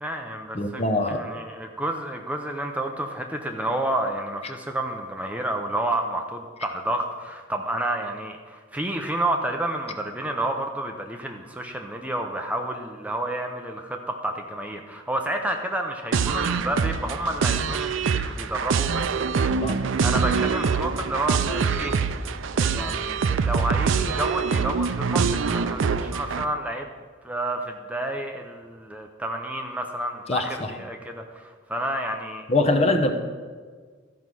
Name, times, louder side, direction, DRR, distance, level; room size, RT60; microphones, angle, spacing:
voice 1, 0.0-19.5 20.0-22.0 22.3-26.9 27.2-32.4, right 1 dB, 5° right, 3 dB, 0.6 m, -30 dB
voice 2, 0.5-1.2 19.6-19.8 21.8-21.9 30.3-30.7 32.5-33.1, left 2 dB, 30° left, 6 dB, 0.8 m, -23 dB
sound 1, 16.1-26.4, right 5 dB, 75° right, 0.4 m, -24 dB
13.0 x 5.4 x 6.2 m, 1.5 s
head